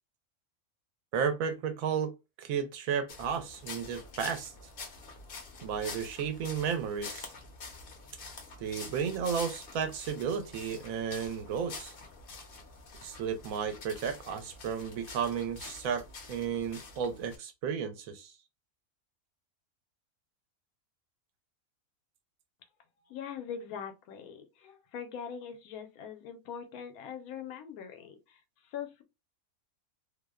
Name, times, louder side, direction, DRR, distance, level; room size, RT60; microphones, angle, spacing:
voice 1, 1.1-2.1 2.4-4.5 5.6-7.3 8.6-11.9 13.0-18.3, right 7 dB, 75° right, 1.0 m, -33 dB
sound 1, 3.1-17.4, left 4 dB, 55° left, 0.6 m, -46 dB
voice 2, 23.0-29.0, left 7 dB, 85° left, 1.1 m, -42 dB
2.7 x 2.0 x 2.2 m
omnidirectional pair, 1.5 m